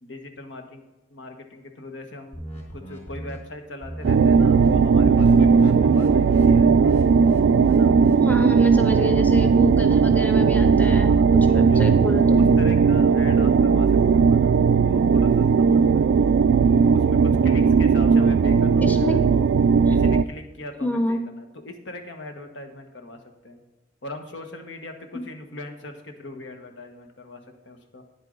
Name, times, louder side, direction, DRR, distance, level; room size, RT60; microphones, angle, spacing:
voice 1, 0.0-0.8 1.1-2.4 2.7-6.9 7.7-8.0 8.8-9.1 11.1-16.1 16.8-19.2 19.9-23.6 24.0-28.0, left 2 dB, 80° left, 5 dB, 1.3 m, -40 dB
sound 1, 2.3-3.4 3.8-4.1 4.4-4.7 4.9-8.2, equal, 35° left, 3.2 m, -37 dB
sound 2, 4.0-20.2, right 5 dB, 85° right, 0.3 m, -17 dB
voice 2, 8.2-12.4 18.8-19.2 19.9-20.0 20.8-21.2, left 1 dB, 10° left, 5 dB, 0.7 m, -28 dB
10.0 x 8.2 x 3.9 m, 1.1 s
head